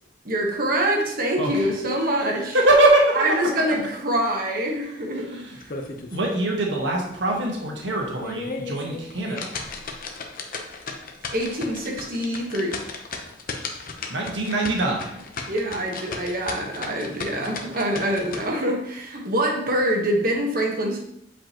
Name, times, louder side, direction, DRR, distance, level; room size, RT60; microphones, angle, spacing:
voice 1, 0.2-2.6 3.1-5.4 11.3-12.8 15.5-21.0, right 1 dB, 50° right, 1 dB, 1.3 m, -25 dB
voice 2, 1.4-1.7 2.2-3.2 5.2-5.6 6.1-9.7 14.1-15.2, right 2 dB, 80° right, -1 dB, 1.5 m, -23 dB
sound 1, 5.6-6.3 6.7-6.8 7.3-7.4 8.0-18.4, left 4 dB, 50° left, 0.8 m, -35 dB
8.3 x 5.1 x 3.0 m, 0.76 s
head